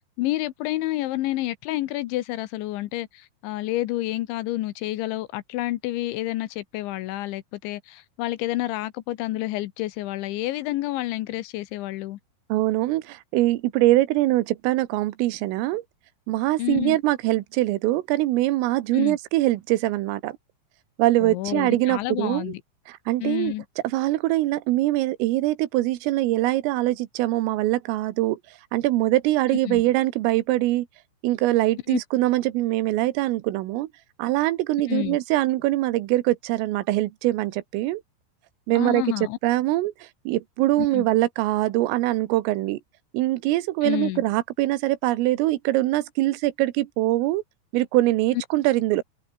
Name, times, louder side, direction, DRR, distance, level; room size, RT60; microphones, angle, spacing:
voice 1, 0.2-12.2 16.6-17.0 18.9-19.2 21.2-22.6 23.2-23.6 29.7-29.8 31.9-32.0 34.9-35.2 38.7-39.4 40.8-41.1 43.8-44.2, left 16 dB, 75° left, 3.2 m, -29 dB
voice 2, 12.5-15.8 16.3-20.4 21.0-22.5 22.9-23.5 23.8-28.4 28.7-30.9 31.2-33.9 34.2-38.0 38.7-39.0 39.4-42.8 43.1-47.4 47.7-49.0, right 17 dB, 90° right, 3.8 m, -23 dB
omnidirectional pair, 5.8 m